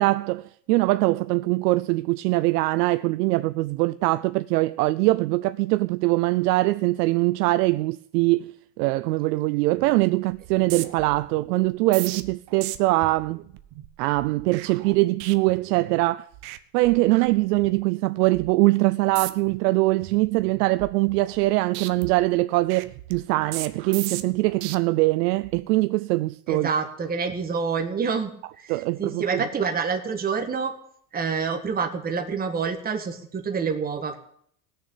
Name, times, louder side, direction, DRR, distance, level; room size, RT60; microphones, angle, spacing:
voice 1, 0.0-8.5 8.8-13.4 14.0-16.3 16.7-26.7 28.7-29.4, right 20 dB, 85° right, 0.6 m, -22 dB
sound 1, 9.8-10.0 10.3-16.0 16.3-16.6 16.8-17.8 18.2-18.5 19.0-19.6 20.0-21.5 21.7-24.7 25.3-25.6, right 15 dB, 55° right, 1.1 m, -38 dB
voice 2, 26.5-30.7 31.1-34.2, right 5 dB, 20° right, 1.7 m, -27 dB
17.5 x 6.9 x 8.7 m
supercardioid pair, 140°, 47 cm